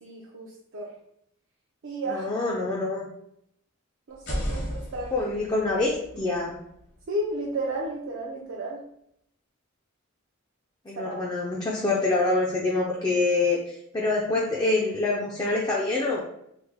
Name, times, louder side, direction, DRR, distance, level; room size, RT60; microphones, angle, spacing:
voice 1, 0.0-0.9 1.8-2.3 4.1-5.3 7.1-8.8 11.0-11.2, right 1 dB, 65° right, -3 dB, 0.5 m, -33 dB
voice 2, 2.1-3.1 5.1-6.6 10.9-16.2, left 2 dB, 20° left, -4 dB, 0.4 m, -26 dB
sound 1, 4.1-7.9, equal, 55° left, 0.8 m, -36 dB
3.1 x 2.1 x 3.4 m, 0.76 s
head